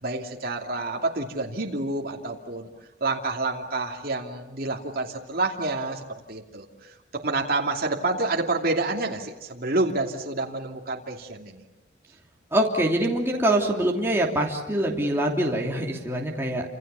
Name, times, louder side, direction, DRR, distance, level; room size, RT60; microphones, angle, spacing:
voice 1, 0.0-2.7 3.0-11.6, right 2 dB, 50° right, 0 dB, 2.8 m, -28 dB
voice 2, 12.5-16.6, right 1 dB, 15° right, -1 dB, 3.0 m, -24 dB
29.5 x 27.0 x 7.0 m, 0.96 s
head